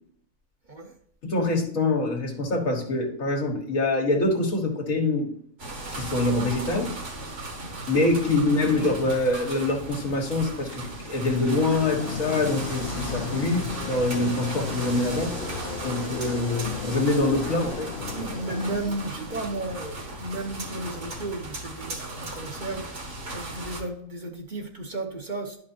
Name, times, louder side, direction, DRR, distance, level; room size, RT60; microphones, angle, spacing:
voice 1, 1.2-5.3 5.9-6.9 7.9-15.3 15.8-17.9, left 2 dB, 85° left, 2 dB, 2.0 m, -25 dB
sound 1, 5.6-23.8, right 2 dB, 60° right, 1.9 m, -36 dB
voice 2, 8.5-8.8 18.1-25.6, right 2 dB, 40° right, 3 dB, 0.9 m, -34 dB
Fixed-wing aircraft airplane, 11.7-18.8, left 6 dB, 50° left, 0.7 m, -35 dB
11.5 x 5.3 x 2.8 m, 0.68 s
omnidirectional pair, 1.4 m